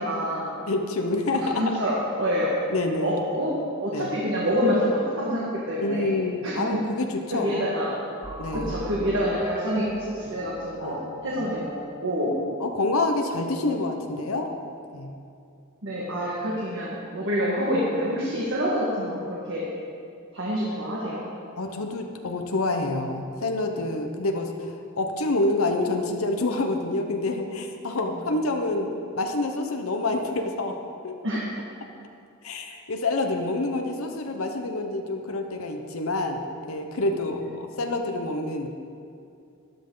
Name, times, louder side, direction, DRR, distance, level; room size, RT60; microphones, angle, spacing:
voice 1, 0.0-0.5 1.5-2.5 3.0-3.5 3.8-6.1 6.4-6.7 7.3-8.0 8.5-11.7 12.0-12.3 15.8-19.7 20.3-21.2 31.2-31.4 37.4-37.5, equal, 65° right, -6 dB, 1.8 m, -27 dB
voice 2, 0.7-1.7 2.7-3.1 3.9-4.2 5.8-7.7 8.4-8.8 10.8-11.5 12.6-14.5 14.9-15.1 21.6-30.8 31.0-31.1 32.4-36.4 36.7-38.7, left 2 dB, 80° left, 4 dB, 1.0 m, -27 dB
sound 1, 8.2-11.8, right 2 dB, 15° right, 0.3 m, -38 dB
13.0 x 11.0 x 3.9 m, 2.5 s
head